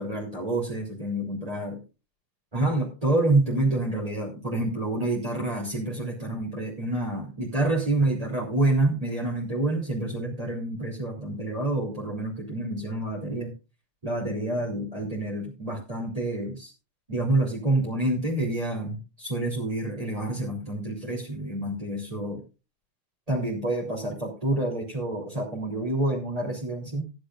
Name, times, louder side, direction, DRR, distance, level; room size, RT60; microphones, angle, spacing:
voice 1, 0.0-1.8 2.5-13.5 14.0-16.7 17.1-22.4 23.3-27.1, right 2 dB, 10° right, -2 dB, 2.0 m, -28 dB
18.5 x 10.5 x 2.5 m, 0.30 s
omnidirectional pair, 6.0 m